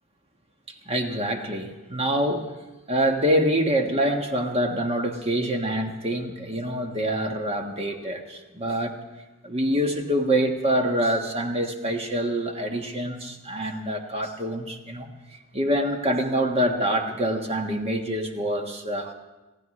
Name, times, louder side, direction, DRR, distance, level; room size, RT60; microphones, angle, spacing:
voice 1, 0.8-2.5 2.9-8.9 9.4-15.1 15.5-19.1, right 1 dB, 30° right, 3 dB, 1.4 m, -25 dB
27.0 x 15.0 x 3.2 m, 1.1 s
head